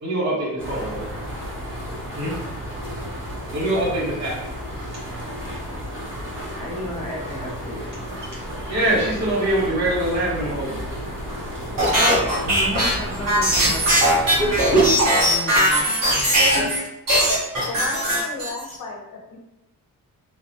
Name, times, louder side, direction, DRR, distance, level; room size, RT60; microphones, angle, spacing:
voice 1, 0.0-1.0 2.2-2.4 3.5-4.4 8.7-10.8 15.9-16.0, right 1 dB, 55° right, -8 dB, 1.2 m, -24 dB
sound 1, 0.6-14.9, equal, 35° right, 0.8 m, -32 dB
voice 2, 6.6-7.9 11.9-14.5 15.1-16.3, left 1 dB, 20° left, -7 dB, 0.6 m, -32 dB
sound 2, 11.8-16.8 17.1-18.7, right 1 dB, 70° right, 1.3 m, -19 dB
voice 3, 17.4-19.4, left 3 dB, 60° left, 0 dB, 0.7 m, -34 dB
3.8 x 2.2 x 2.8 m, 1.0 s
wide cardioid pair, 160°, 35 cm